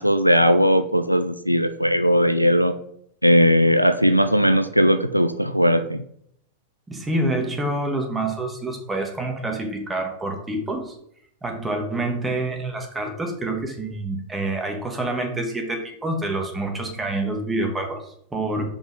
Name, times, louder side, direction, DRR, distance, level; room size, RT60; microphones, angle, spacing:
voice 1, 0.0-2.8 3.2-6.0, equal, 90° right, 10 dB, 0.4 m, -18 dB
voice 2, 6.9-10.9 11.4-18.6, right 2 dB, 10° right, 2 dB, 1.7 m, -27 dB
5.3 x 5.2 x 4.7 m, 0.69 s
figure-of-eight pair, 90°, 0 cm